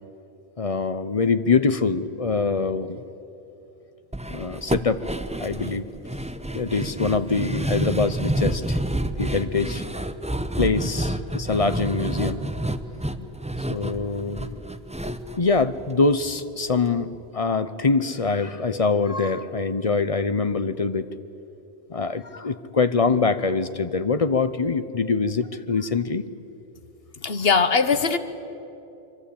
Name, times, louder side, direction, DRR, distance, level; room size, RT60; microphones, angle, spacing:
voice 1, 0.6-3.0 4.3-5.0 5.4-5.9 6.5-8.8 9.2-9.8 10.6-12.4 13.2-13.3 13.7-14.5 15.4-21.1 21.9-26.3, left 4 dB, 35° left, 12 dB, 0.8 m, -24 dB
sound 1, 4.1-16.4 16.7-16.8 17.1-17.2, right 1 dB, 5° right, 0.7 m, -29 dB
voice 2, 27.2-28.2, left 5 dB, 70° left, 11 dB, 1.3 m, -20 dB
24.5 x 24.5 x 8.6 m, 2.9 s
omnidirectional pair, 1.1 m